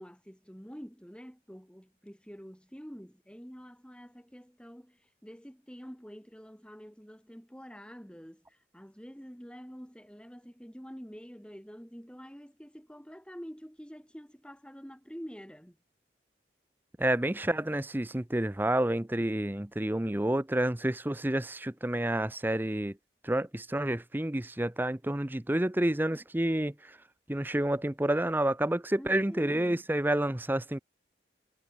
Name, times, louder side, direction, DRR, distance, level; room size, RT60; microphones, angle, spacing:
voice 1, 0.0-15.8 26.1-26.2 29.0-29.8, equal, 5° left, 7.2 m, -47 dB
voice 2, 17.0-22.9 23.2-26.7 27.3-30.8, right 1 dB, 10° right, 0.6 m, -29 dB
head